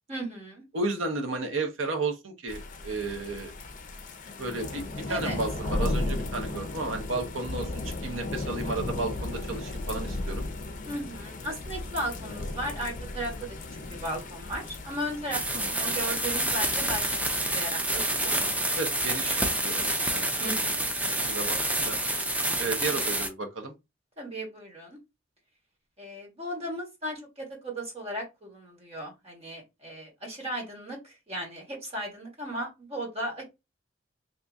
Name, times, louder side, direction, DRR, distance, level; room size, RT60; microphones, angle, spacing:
voice 1, 0.1-0.6 5.1-5.4 10.9-13.5 13.9-18.3 20.4-20.9 24.2-25.0 26.0-33.4, right 1 dB, 30° right, 1.4 m, -36 dB
voice 2, 0.7-3.5 4.4-10.4 15.5-15.7 18.7-19.4 19.6-20.7 21.0-22.0 22.6-23.7, right 3 dB, 75° right, 1.0 m, -33 dB
sound 1, 2.5-17.5, left 2 dB, 40° left, 0.6 m, -35 dB
sound 2, 15.3-23.3, right 1 dB, 5° right, 0.5 m, -28 dB
2.8 x 2.7 x 3.5 m
head